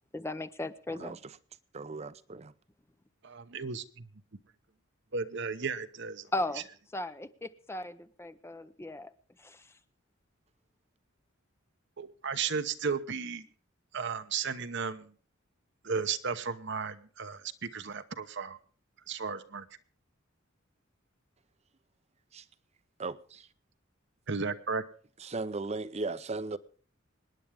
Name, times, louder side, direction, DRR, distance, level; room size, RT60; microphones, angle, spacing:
voice 1, 0.1-1.2 6.3-6.6 6.9-9.1 9.4-9.6, left 1 dB, 15° left, 0.6 m, -36 dB
voice 2, 0.9-1.4 1.7-2.5 22.3-22.4 23.0-23.5 25.2-26.6, right 3 dB, 35° right, 0.7 m, -37 dB
voice 3, 3.2-4.1 5.1-6.3 12.0-13.5 13.9-15.1 15.8-18.6 19.1-19.7 24.3-24.8, right 5 dB, 60° right, 1.0 m, -34 dB
25.5 x 10.0 x 3.5 m
head